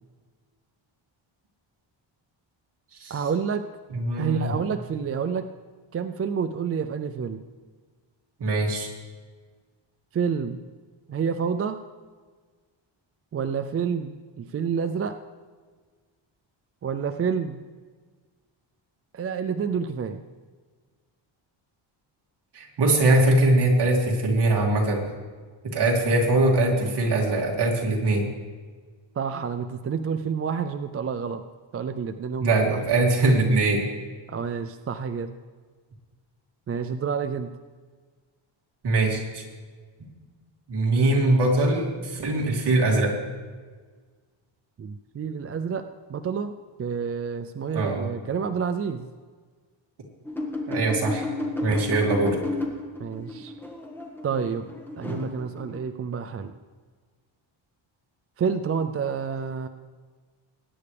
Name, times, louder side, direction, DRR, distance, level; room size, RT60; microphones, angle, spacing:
voice 1, 3.1-3.7 4.2-5.5 5.9-7.4 10.1-10.6 11.1-11.8 13.3-15.2 16.8-17.6 19.1-20.2 29.2-31.4 31.7-32.6 34.3-35.3 36.7-37.5 44.8-46.5 46.8-49.1 53.0-53.5 54.2-56.5 58.4-59.7, right 6 dB, 30° right, 9 dB, 0.4 m, -29 dB
voice 2, 3.9-4.5 8.4-8.9 22.5-25.1 25.6-28.2 32.4-33.9 38.8-39.4 40.7-43.2 47.7-48.0 50.7-51.3 51.6-52.4, right 2 dB, 55° right, -1 dB, 2.8 m, -22 dB
sound 1, 50.3-55.8, left 2 dB, 5° left, 1.6 m, -32 dB
21.0 x 9.7 x 3.4 m, 1.5 s
cardioid pair, 135°, 48 cm